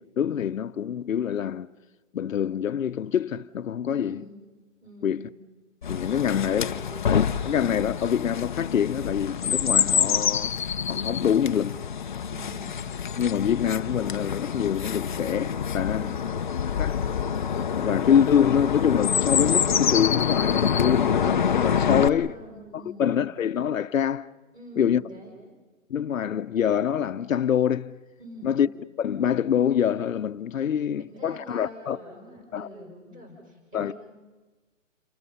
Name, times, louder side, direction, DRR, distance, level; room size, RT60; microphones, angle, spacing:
voice 1, 0.2-1.7 2.1-4.2 5.0-5.3 5.9-6.7 7.1-10.5 10.9-11.8 13.2-16.2 16.8-17.0 17.5-22.3 22.7-24.3 24.8-25.0 25.9-28.0 28.4-28.7 29.0-32.0 32.5-32.7 33.7-33.9, left 8 dB, 85° left, 0.8 m, -25 dB
voice 2, 3.9-4.4 4.8-5.3 12.2-12.7 15.9-16.5 21.7-23.3 24.5-25.4 28.2-28.6 30.6-33.9, equal, 10° right, 5.9 m, -45 dB
Chirp tweet, 5.8-22.1, left 7 dB, 40° left, 0.6 m, -26 dB
28.5 x 24.0 x 5.7 m
hypercardioid pair, 170°, 39 cm